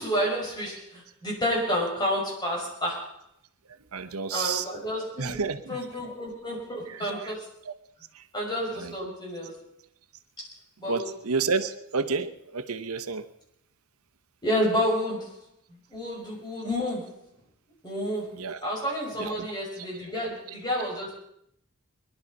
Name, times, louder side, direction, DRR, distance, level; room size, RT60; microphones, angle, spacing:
voice 1, 0.0-3.2 4.3-5.4 5.7-7.5 8.3-9.6 10.4-10.5 10.8-11.1 11.6-11.7 14.4-15.4 15.7-17.2 17.8-18.4 18.6-21.1, equal, 20° left, -3 dB, 6.1 m, -30 dB
voice 2, 3.9-4.6 5.2-5.9 6.9-7.3 7.6-7.7 8.1-8.3 8.7-8.9 10.8-13.2 18.4-18.6 19.2-19.5, right 5 dB, 85° right, 10 dB, 1.0 m, -30 dB
22.0 x 11.5 x 5.3 m, 0.74 s
head